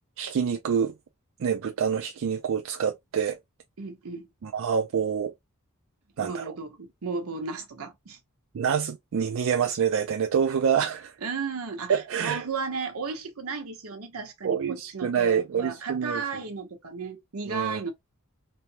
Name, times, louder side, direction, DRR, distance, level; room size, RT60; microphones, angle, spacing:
voice 1, 0.2-0.9 1.4-3.4 4.4-5.3 6.2-6.5 8.5-11.2 11.9-12.4 14.4-16.2 17.5-17.8, right 7 dB, 65° right, 0.4 m, -26 dB
voice 2, 3.8-4.3 6.2-8.2 11.2-17.9, right 5 dB, 80° right, 0.9 m, -34 dB
3.2 x 2.0 x 2.7 m
head